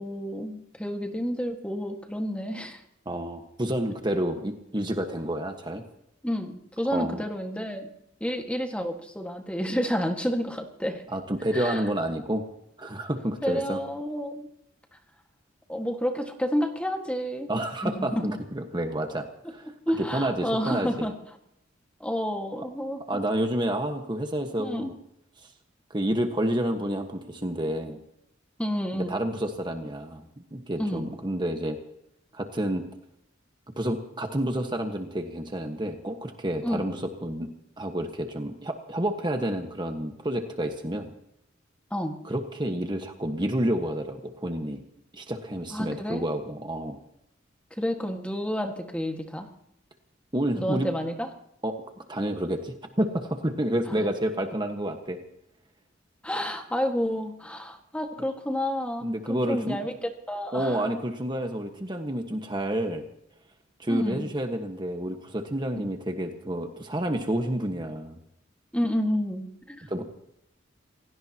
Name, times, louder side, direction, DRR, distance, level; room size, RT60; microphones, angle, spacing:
voice 1, 0.0-2.8 6.2-7.9 8.2-11.0 11.5-11.8 13.4-14.5 15.7-17.5 17.8-18.4 19.9-21.1 22.0-23.0 24.6-24.9 28.6-29.2 30.8-31.1 36.6-36.9 41.9-42.1 45.7-46.3 47.8-49.5 50.5-51.3 53.9-54.0 56.2-59.0 59.3-60.8 63.9-64.3 65.7-65.8 68.7-70.0, equal, 5° left, 4 dB, 1.7 m, -30 dB
voice 2, 3.0-5.8 6.9-7.2 11.1-12.4 12.8-13.8 17.5-19.7 20.1-21.1 23.1-24.9 25.9-28.0 28.9-31.8 32.3-32.8 33.8-37.5 37.8-41.1 42.2-44.8 45.1-47.0 50.3-50.9 51.6-51.8 52.1-55.2 58.2-58.3 59.0-59.8 60.5-63.0 63.8-68.2 69.9-70.0, right 1 dB, 25° right, 5 dB, 1.4 m, -29 dB
28.0 x 17.0 x 3.0 m, 0.78 s
head